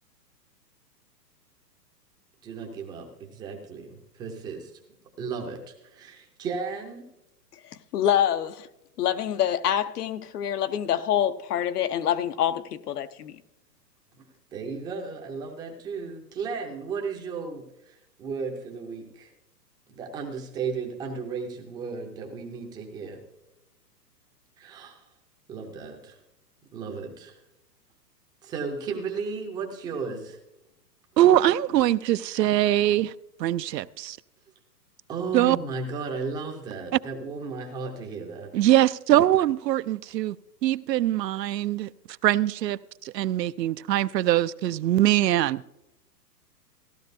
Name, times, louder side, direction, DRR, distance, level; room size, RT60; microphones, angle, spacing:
voice 1, 2.4-4.7 5.2-7.1 14.5-19.3 19.9-23.2 24.6-25.1 25.5-26.2 26.7-27.4 28.4-30.4 35.1-38.5, right 5 dB, 10° right, 0.5 m, -35 dB
voice 2, 7.9-8.7 9.0-13.4, left 10 dB, 65° left, 0.9 m, -26 dB
voice 3, 31.2-33.1 33.4-34.2 35.3-35.6 38.5-40.4 40.6-41.9 42.2-45.6, right 13 dB, 80° right, 0.6 m, -22 dB
15.5 x 12.0 x 2.6 m
hypercardioid pair, 140°, 50 cm